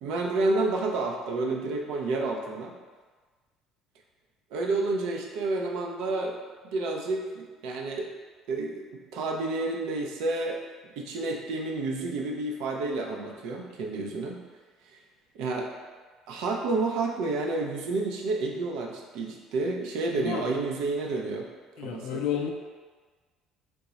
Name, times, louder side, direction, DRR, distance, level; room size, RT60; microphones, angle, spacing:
voice 1, 0.0-2.8 4.5-6.4 6.7-8.1 8.5-10.6 11.0-14.4 15.3-15.7 16.3-21.5 21.8-22.2, right 3 dB, 70° right, 1 dB, 0.5 m, -30 dB
voice 2, 20.1-20.5 21.8-22.5, left 9 dB, 70° left, 2 dB, 0.4 m, -31 dB
3.5 x 2.0 x 3.9 m, 1.4 s
cardioid pair, 160°, 0 cm